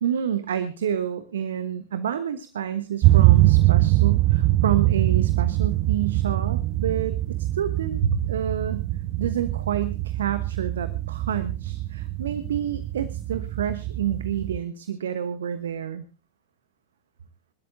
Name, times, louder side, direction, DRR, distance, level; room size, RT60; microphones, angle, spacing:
voice 1, 0.0-8.8 9.2-16.0, right 9 dB, 65° right, 12 dB, 1.1 m, -28 dB
sound 1, 3.0-14.6, right 17 dB, 40° right, 0.6 m, -23 dB
26.0 x 12.5 x 2.7 m, 0.33 s
figure-of-eight pair, 90°, 0 cm